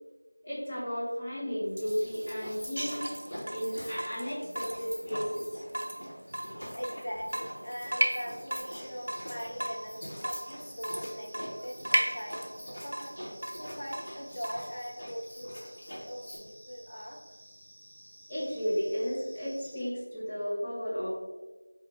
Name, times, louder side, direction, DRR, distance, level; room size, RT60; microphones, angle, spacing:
voice 1, 0.4-3.0 3.5-5.6 18.3-21.1, equal, 10° left, -10 dB, 0.5 m, -33 dB
sound 1, 1.7-16.4, equal, 50° left, 1.5 m, -44 dB
Water tap faucet / Drip, 2.8-14.7, right 1 dB, 45° right, 0.3 m, -36 dB
voice 2, 6.7-13.2 13.6-15.8 16.0-17.4, equal, 70° left, -2 dB, 0.9 m, -41 dB
sound 2, 8.6-19.8, equal, 15° right, 0.8 m, -54 dB
2.8 x 2.5 x 4.1 m, 1.2 s
figure-of-eight pair, 175°, 0 cm